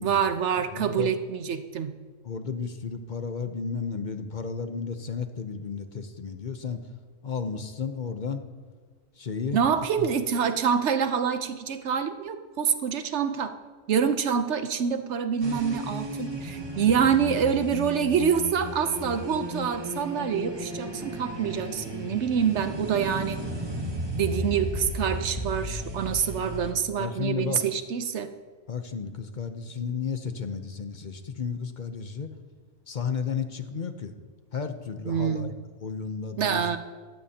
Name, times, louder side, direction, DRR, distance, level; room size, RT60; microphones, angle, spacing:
voice 1, 0.0-1.9 9.5-13.5 13.9-23.4 24.2-28.3 35.0-35.5 36.4-36.8, right 7 dB, 65° right, 9 dB, 1.0 m, -26 dB
voice 2, 0.7-1.1 2.2-6.8 7.2-8.4 9.2-9.6 10.0-10.1 27.0-27.6 28.7-32.3 32.9-34.1 34.5-35.5 35.8-36.7, left 6 dB, 45° left, 8 dB, 0.7 m, -33 dB
sound 1, 15.4-26.7, equal, 20° right, 1.2 m, -34 dB
16.0 x 14.5 x 2.8 m, 1.4 s
omnidirectional pair, 1.4 m